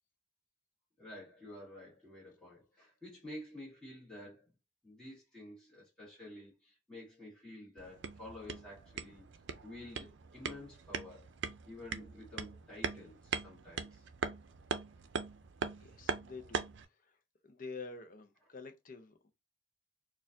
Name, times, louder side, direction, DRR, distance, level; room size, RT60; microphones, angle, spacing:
voice 1, 1.0-4.5 4.8-9.3 9.6-11.3 11.7-14.1, left 1 dB, 5° left, 1.7 m, -50 dB
sound 1, 7.8-16.9, right 5 dB, 75° right, 0.5 m, -41 dB
voice 2, 15.8-17.2 17.4-19.3, left 4 dB, 50° left, 0.7 m, -48 dB
4.3 x 2.4 x 2.6 m
head